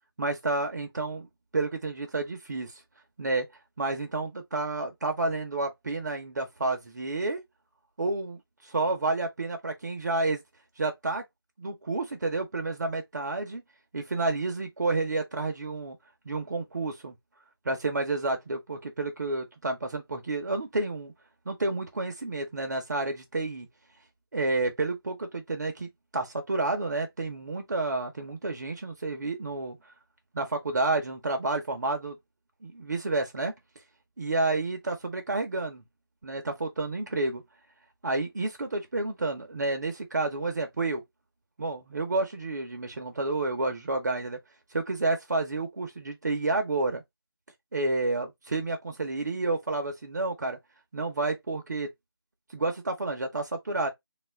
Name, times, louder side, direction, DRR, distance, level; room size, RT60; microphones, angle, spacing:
voice 1, 0.2-1.3 1.5-2.8 3.2-3.5 3.8-7.4 8.0-10.4 10.8-11.2 11.6-13.6 13.9-16.0 16.2-17.1 17.6-21.1 21.5-23.7 24.3-29.8 30.3-32.2 32.6-33.5 34.2-35.8 36.2-37.4 38.0-41.0 41.6-44.4 44.7-47.0 47.7-50.6 50.9-51.9 52.5-53.9, right 2 dB, 45° right, 0.8 m, -30 dB
3.6 x 2.4 x 3.2 m
figure-of-eight pair, 170°, 13 cm